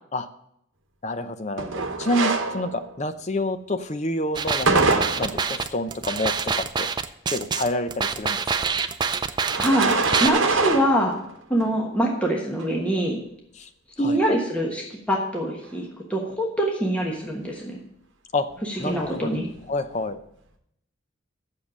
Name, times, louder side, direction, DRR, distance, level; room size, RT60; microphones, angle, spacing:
voice 1, 1.0-4.8 5.2-6.9 7.3-8.4 13.6-13.7 14.0-14.4 18.3-18.5 18.8-19.4 19.7-20.2, left 1 dB, 35° left, 9 dB, 0.6 m, -28 dB
sound 1, 1.6-3.0 4.7-5.6 9.4-11.2 11.6-11.7 12.6-12.7 18.5-19.6, right 3 dB, 65° right, 1.1 m, -25 dB
sound 2, 4.3-10.3, right 5 dB, 20° right, 0.3 m, -26 dB
voice 2, 9.6-9.9 10.2-11.2 11.5-13.2 14.0-17.8 18.6-19.5, right 1 dB, 5° left, -1 dB, 1.2 m, -24 dB
7.4 x 6.6 x 7.3 m, 0.74 s
head